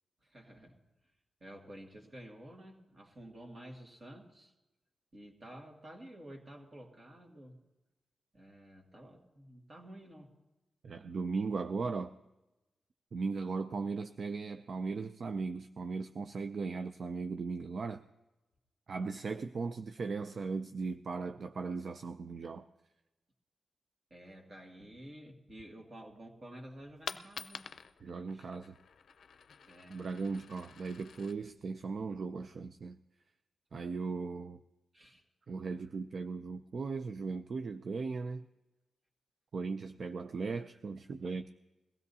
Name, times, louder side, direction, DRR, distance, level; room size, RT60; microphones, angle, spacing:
voice 1, 0.2-0.8 1.4-4.5 5.1-7.6 8.3-10.4 24.1-27.7 28.3-28.5 29.6-30.1 34.9-35.2, right 1 dB, 35° right, 2.2 m, -51 dB
voice 2, 10.8-12.1 13.1-18.0 18.9-22.6 28.0-28.7 29.9-33.0 33.7-34.6 35.5-38.5 39.5-41.5, right 4 dB, 55° right, 0.4 m, -37 dB
Coin (dropping), 26.7-32.7, left 6 dB, 70° left, 0.5 m, -49 dB
22.0 x 16.0 x 2.8 m
wide cardioid pair, 105°, 0 cm